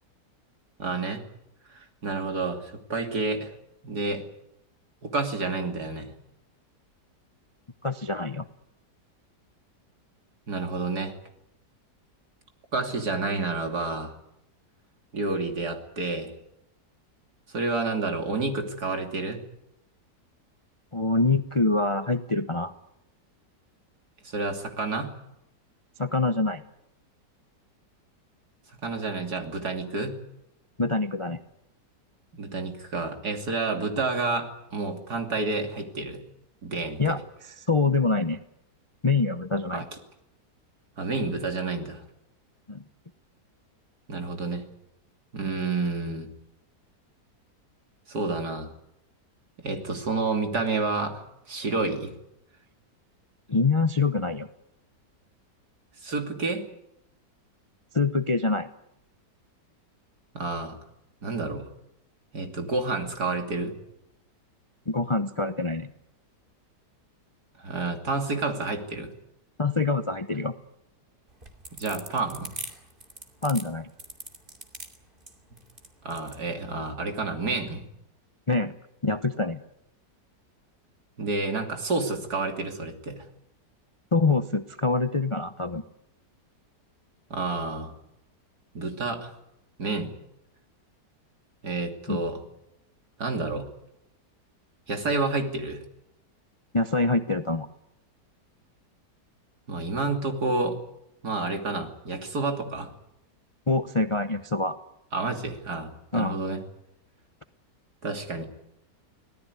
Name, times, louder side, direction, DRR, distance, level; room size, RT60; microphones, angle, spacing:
voice 1, 0.8-1.2 1.7-3.5 3.8-4.2 5.0-6.1 10.5-11.1 12.7-14.1 15.1-16.3 17.5-19.4 24.2-25.1 28.8-30.2 32.3-36.2 36.6-37.1 39.7-39.8 41.0-42.0 44.1-44.6 45.3-46.3 48.1-48.7 49.6-52.1 56.0-56.6 60.3-60.8 61.2-61.7 62.3-63.7 67.6-69.1 71.8-72.5 76.0-77.8 81.2-83.2 87.3-87.9 88.7-89.3 89.8-90.1 91.6-92.4 93.2-93.7 94.9-95.8 99.7-100.8 101.2-102.9 105.1-106.6 108.0-108.5, right 3 dB, 65° right, 4 dB, 3.5 m, -29 dB
voice 2, 7.8-8.4 20.9-22.7 26.0-26.6 30.8-31.4 37.0-37.2 37.7-38.4 39.0-39.8 42.7-42.8 53.5-54.5 57.9-58.7 64.9-65.9 69.6-70.5 73.4-73.9 78.5-78.7 79.0-79.6 84.1-85.8 92.1-92.2 96.7-97.7 103.7-104.8 106.1-106.4, left 3 dB, 30° left, 10 dB, 0.6 m, -25 dB
sound 1, 71.3-76.4, right 2 dB, 30° right, 2.8 m, -41 dB
25.5 x 18.0 x 9.7 m, 0.84 s
omnidirectional pair, 1.8 m